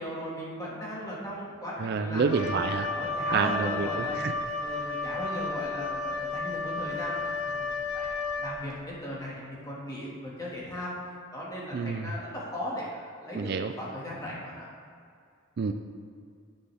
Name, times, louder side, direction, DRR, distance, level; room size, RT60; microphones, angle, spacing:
voice 1, 0.0-2.5 2.9-4.2 4.6-7.7 7.9-8.1 8.4-10.9 11.3-14.7, equal, 15° left, -6 dB, 1.9 m, -37 dB
voice 2, 1.8-2.9 3.3-4.4 4.7-4.8 11.7-12.1 13.3-13.7 15.6-15.7, right 5 dB, 50° right, 7 dB, 0.3 m, -28 dB
Wind instrument woodwind instrument, 2.3-8.8, left 3 dB, 80° left, 0.8 m, -32 dB
9.2 x 9.1 x 3.5 m, 2.3 s
head